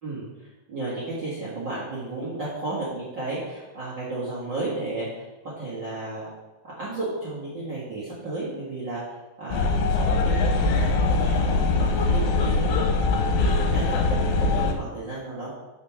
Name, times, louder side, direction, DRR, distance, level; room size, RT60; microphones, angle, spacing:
voice 1, 0.0-6.3 6.8-15.5, right 2 dB, 55° right, -7 dB, 1.2 m, -33 dB
sound 1, 9.5-14.7, left 3 dB, 85° left, 3.0 m, -22 dB
6.4 x 5.3 x 6.0 m, 1.1 s
omnidirectional pair, 5.0 m